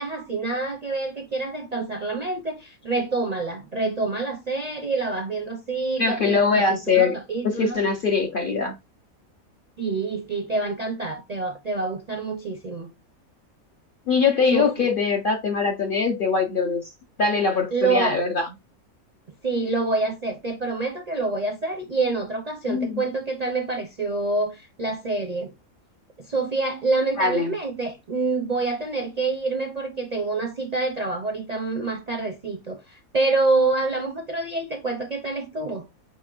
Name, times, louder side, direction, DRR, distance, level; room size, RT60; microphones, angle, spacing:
voice 1, 0.0-7.8 9.8-12.9 14.5-14.9 17.7-18.2 19.4-25.5 26.2-35.9, right 3 dB, 45° right, 0.5 m, -27 dB
voice 2, 6.0-7.1 7.4-8.7 14.1-16.8 17.2-18.5 22.7-23.0 27.2-27.5, left 5 dB, 50° left, 0.7 m, -22 dB
5.1 x 4.3 x 2.4 m
omnidirectional pair, 1.5 m